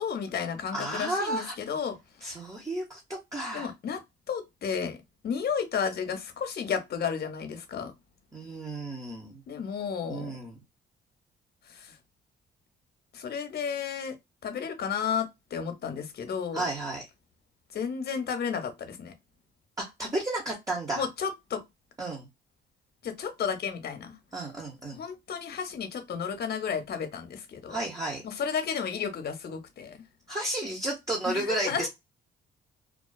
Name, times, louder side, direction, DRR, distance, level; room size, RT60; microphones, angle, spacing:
voice 1, 0.0-2.0 3.5-4.0 4.3-5.0 5.2-7.9 9.5-10.3 11.7-12.0 13.1-14.2 14.4-16.7 17.7-19.1 20.9-21.6 23.0-24.2 24.9-27.8 28.2-30.0 31.3-31.9, left 7 dB, 55° left, 0.8 m, -32 dB
voice 2, 0.7-1.5 2.2-3.7 8.3-9.4 10.1-10.5 16.5-17.1 19.8-21.1 22.0-22.3 24.3-25.0 27.7-28.2 30.3-31.9, right 2 dB, 15° right, 0.8 m, -32 dB
2.4 x 2.3 x 2.2 m
cardioid pair, 90°, 20 cm